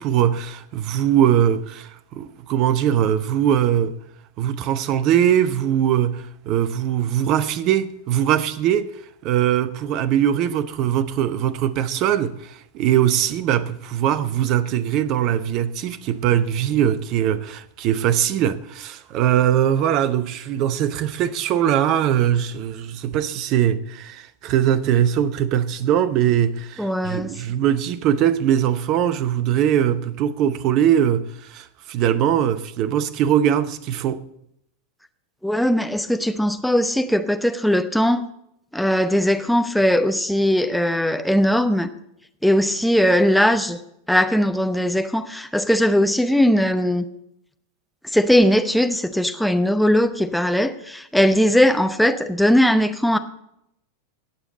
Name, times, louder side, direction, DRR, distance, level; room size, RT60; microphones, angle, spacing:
voice 1, 0.0-4.0 4.4-8.9 9.2-34.2, right 10 dB, 40° right, 0.8 m, -21 dB
voice 2, 26.8-27.4 35.4-38.3 38.7-41.9 42.4-43.8 44.1-47.0 48.1-53.2, equal, ahead, 0.8 m, -19 dB
19.0 x 7.2 x 4.0 m
figure-of-eight pair, 90°, 0 cm